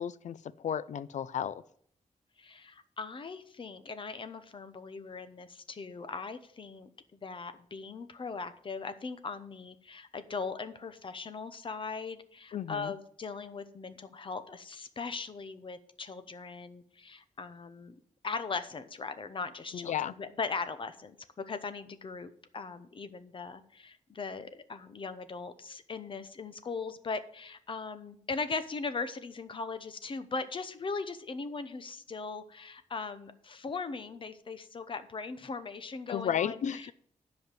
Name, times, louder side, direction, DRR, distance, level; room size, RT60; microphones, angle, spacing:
voice 1, 0.0-1.6 12.5-12.9 19.7-20.1 36.1-36.9, left 9 dB, 75° left, 17 dB, 0.5 m, -33 dB
voice 2, 2.4-17.9 18.2-36.9, left 4 dB, 40° left, 11 dB, 0.8 m, -39 dB
10.5 x 5.3 x 7.5 m, 0.63 s
wide cardioid pair, 145°, 13 cm